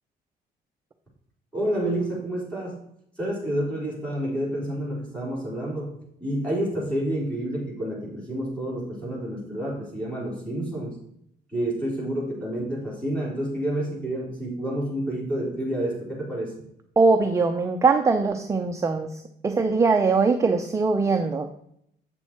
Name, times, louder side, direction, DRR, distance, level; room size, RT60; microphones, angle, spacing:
voice 1, 1.5-2.8 3.2-11.0 11.5-16.6, right 1 dB, 5° left, -5 dB, 3.3 m, -29 dB
voice 2, 17.0-21.5, right 4 dB, 15° right, 5 dB, 0.5 m, -22 dB
8.1 x 6.2 x 4.3 m, 0.72 s
cardioid pair, 165°, 17 cm